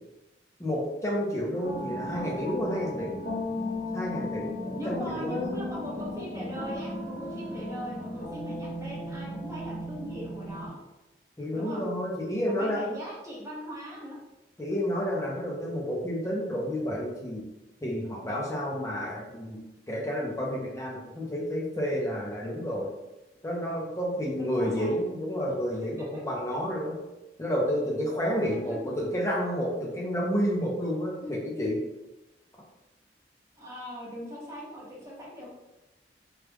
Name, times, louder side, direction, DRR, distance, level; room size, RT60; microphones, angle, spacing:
voice 1, 0.6-3.1 3.9-5.6 11.4-12.8 14.6-17.4 17.8-19.6 19.9-22.9 23.4-27.0 27.4-31.8, equal, 15° left, -3 dB, 0.7 m, -30 dB
sound 1, 1.6-10.7, left 1 dB, 70° left, 0.9 m, -36 dB
voice 2, 4.7-10.8 11.5-11.8 12.4-14.2 24.3-25.0 25.4-25.5 25.8-26.1 28.7-29.0 31.2-31.3 33.6-35.5, equal, 15° right, -5 dB, 0.8 m, -40 dB
3.1 x 2.4 x 3.3 m, 1.0 s
head